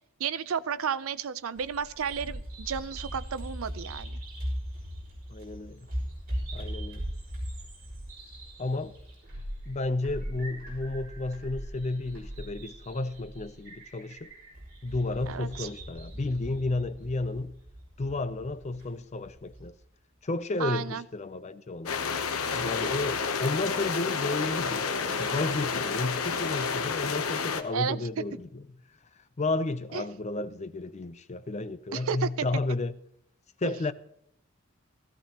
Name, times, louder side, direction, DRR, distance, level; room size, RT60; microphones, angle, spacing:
voice 1, 0.2-4.2 15.3-15.7 20.6-21.0 27.7-28.0 29.9-30.0 31.9-32.5 33.6-33.7, right 7 dB, 75° right, 0.5 m, -32 dB
Bird vocalization bird call bird song, 1.6-19.7, equal, 45° right, 5.0 m, -40 dB
voice 2, 5.3-5.9 6.5-7.1 8.6-9.0 9.7-14.3 14.8-17.6 18.0-19.7 20.2-22.0 22.5-28.8 29.4-33.0 33.6-33.9, left 2 dB, 30° left, 0.5 m, -32 dB
sound 1, 21.9-27.6, left 5 dB, 85° left, 0.9 m, -30 dB
16.0 x 14.5 x 2.9 m
head